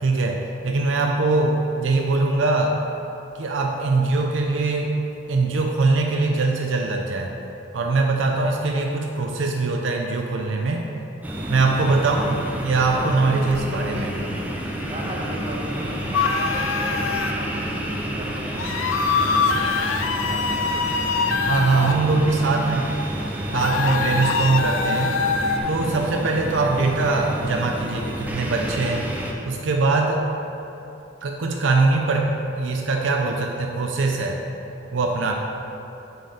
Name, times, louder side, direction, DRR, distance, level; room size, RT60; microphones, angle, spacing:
voice 1, 0.0-2.8 3.3-4.9 5.3-7.4 7.7-10.9 11.5-12.4 12.6-14.1 21.5-22.9 23.5-25.2 25.7-29.1 29.4-30.2 31.2-34.4 34.9-35.3, right 3 dB, 75° right, 2 dB, 0.5 m, -22 dB
sound 1, 11.2-29.3, right 1 dB, 10° right, 0.6 m, -30 dB
voice 2, 11.7-12.8 13.8-14.3 14.9-21.3 21.9-23.6, right 1 dB, 30° right, -2 dB, 0.9 m, -38 dB
sound 2, 16.1-17.3 18.6-21.9 23.5-25.6, left 5 dB, 85° left, 0.4 m, -23 dB
7.7 x 4.3 x 4.9 m, 2.9 s
head